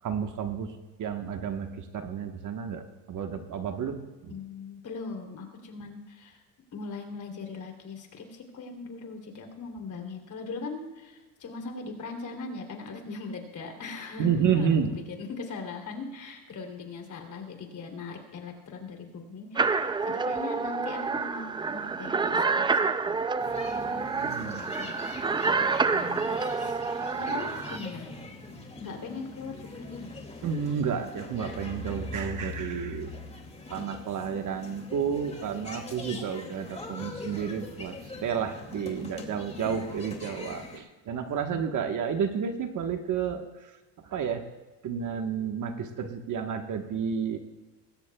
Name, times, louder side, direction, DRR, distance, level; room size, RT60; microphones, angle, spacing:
voice 1, 0.0-4.3 14.2-14.9 24.2-24.7 30.4-33.1 33.7-43.7 44.0-44.4 44.8-47.4, right 7 dB, 40° right, 5 dB, 1.4 m, -31 dB
voice 2, 4.3-6.4 6.7-23.2 24.6-25.0 25.9-28.1 28.8-30.1 41.5-42.0, left 4 dB, 40° left, 3 dB, 3.2 m, -40 dB
sound 1, 19.6-27.8, right 4 dB, 10° right, 0.4 m, -28 dB
sound 2, 23.4-40.8, left 2 dB, 15° left, 2.4 m, -43 dB
20.5 x 16.5 x 2.3 m, 1.2 s
supercardioid pair, 95°, 46 cm